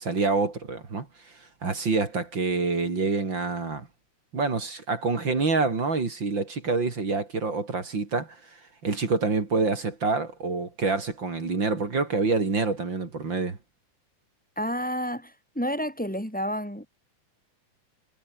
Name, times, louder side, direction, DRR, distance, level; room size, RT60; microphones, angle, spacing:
voice 1, 0.0-3.9 4.3-8.4 8.8-13.6, right 4 dB, 35° right, 3.7 m, -27 dB
voice 2, 14.6-16.9, equal, ahead, 6.7 m, -30 dB
omnidirectional pair, 3.6 m